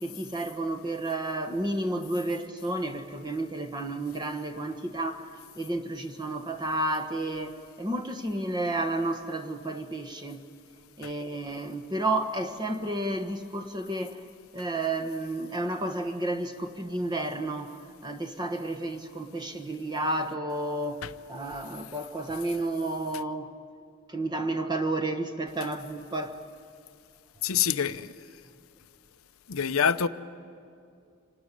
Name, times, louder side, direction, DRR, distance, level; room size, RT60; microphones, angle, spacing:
voice 1, 0.0-5.3 5.6-10.4 11.0-14.2 14.5-23.5 24.1-26.4, right 2 dB, 20° right, 1.3 m, -31 dB
voice 2, 27.4-28.1 29.5-30.1, left 7 dB, 75° left, 0.7 m, -26 dB
26.5 x 18.5 x 10.0 m
head